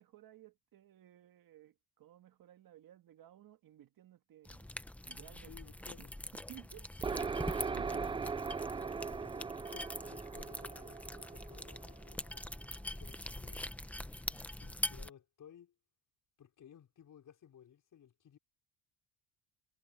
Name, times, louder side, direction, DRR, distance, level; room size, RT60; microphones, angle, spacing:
voice 1, 0.0-4.7 5.1-7.1 7.6-8.2 9.2-9.7, right 12 dB, 55° right, 1.9 m, -57 dB
sound 1, 4.4-15.1, left 1 dB, 5° left, 0.8 m, -44 dB
voice 2, 5.5-6.1 7.8-8.2 9.3-9.5 9.7-12.7 13.0-13.7 14.2-15.7 16.4-18.4, left 9 dB, 45° left, 5.3 m, -58 dB
sound 2, 7.0-12.6, right 5 dB, 15° right, 0.4 m, -39 dB
cardioid pair, 110°, 42 cm